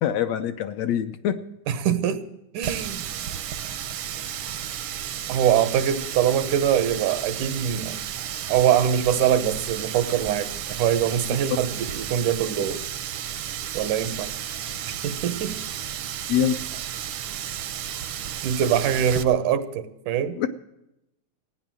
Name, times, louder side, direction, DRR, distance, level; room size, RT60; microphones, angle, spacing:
voice 1, 0.0-1.4 16.3-16.6 20.4-20.5, left 9 dB, 75° left, 9 dB, 1.7 m, -24 dB
voice 2, 1.7-2.2 2.5-3.1 5.3-8.0 8.5-12.8 13.7-14.3 15.0-15.6 18.4-20.4, right 9 dB, 90° right, 12 dB, 2.5 m, -23 dB
Water tap faucet, 2.6-19.2, right 10 dB, 70° right, 1.3 m, -33 dB
16.5 x 9.6 x 7.5 m, 0.87 s
omnidirectional pair, 3.5 m